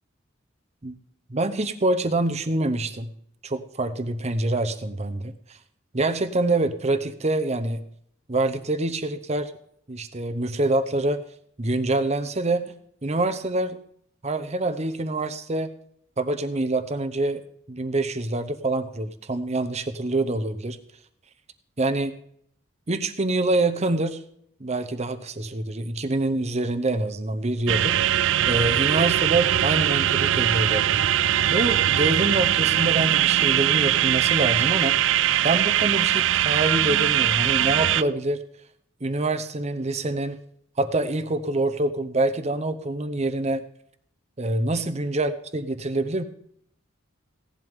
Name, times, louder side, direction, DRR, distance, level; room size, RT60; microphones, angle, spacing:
voice 1, 1.3-3.1 3.4-5.3 5.9-7.8 8.3-9.5 9.9-11.2 11.6-12.7 13.0-13.8 14.2-15.7 16.2-17.4 17.7-20.8 21.8-22.2 22.9-24.2 24.6-31.0 31.5-35.0 35.4-38.4 39.0-40.4 40.8-43.6 44.4-46.2, right 2 dB, 35° right, 9 dB, 0.8 m, -26 dB
sound 1, 27.7-38.0, right 11 dB, 65° right, 0.4 m, -21 dB
17.0 x 11.0 x 3.6 m, 0.68 s
head